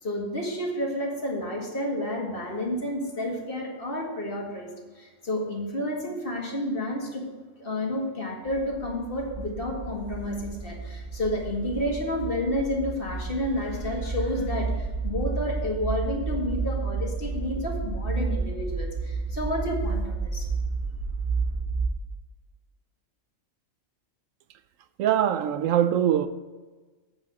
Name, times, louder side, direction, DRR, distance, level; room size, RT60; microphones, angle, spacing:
voice 1, 0.0-4.7 5.0-7.2 7.6-20.5, left 1 dB, 45° left, 2.1 m, -30 dB
sound 1, 8.5-21.9, right 4 dB, 30° right, 1.4 m, -31 dB
voice 2, 25.0-26.3, right 10 dB, 80° right, 1.0 m, -22 dB
8.6 x 5.7 x 8.0 m
omnidirectional pair, 1.3 m